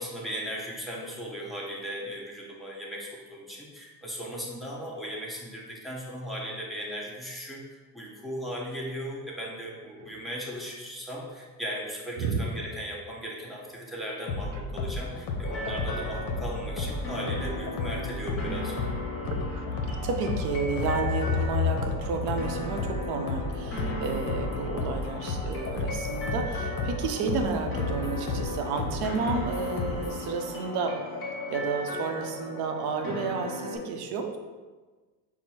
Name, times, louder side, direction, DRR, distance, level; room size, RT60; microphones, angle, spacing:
voice 1, 0.0-18.7, equal, ahead, -5 dB, 0.8 m, -37 dB
sound 1, 14.3-30.3, left 4 dB, 55° left, 0.8 m, -32 dB
sound 2, 15.4-33.8, left 1 dB, 25° left, 1.3 m, -37 dB
voice 2, 19.2-19.7 20.0-31.0 31.5-34.4, right 5 dB, 50° right, 4 dB, 0.7 m, -31 dB
4.4 x 2.1 x 4.1 m, 1.3 s
supercardioid pair, 100°, 48 cm